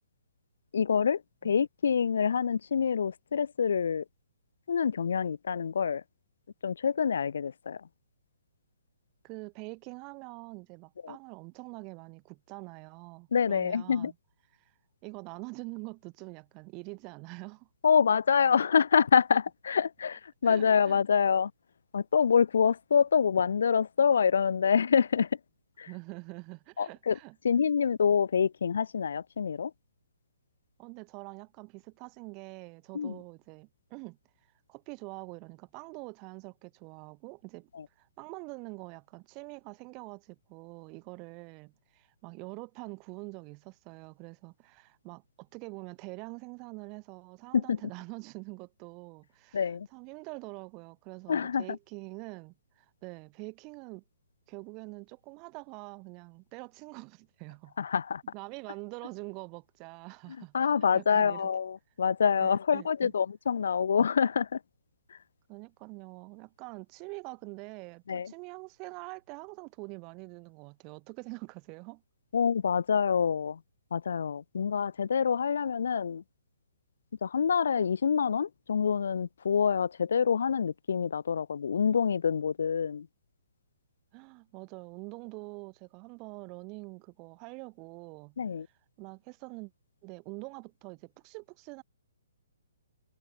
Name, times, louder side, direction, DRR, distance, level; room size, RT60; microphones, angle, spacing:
voice 1, 0.7-4.0 4.7-6.0 6.6-7.8 11.0-11.2 13.3-14.1 17.8-21.5 21.9-25.3 25.8-25.9 26.8-27.2 27.4-29.7 32.9-33.2 37.7-37.8 47.5-47.8 49.5-49.9 51.3-51.6 57.8-58.2 60.5-64.6 68.1-68.3 72.3-73.6 73.9-76.2 77.2-83.1 88.4-88.7, left 6 dB, 55° left, 1.1 m, -26 dB
voice 2, 9.2-14.1 14.6-14.7 15.0-17.7 20.4-21.0 25.9-27.4 30.8-34.2 34.7-37.7 38.0-54.0 54.5-57.9 58.3-61.5 62.4-63.1 65.5-72.0 84.1-88.4 89.0-89.7 90.0-91.8, right 30 dB, 25° right, 4.4 m, -45 dB
figure-of-eight pair, 125°, 0 cm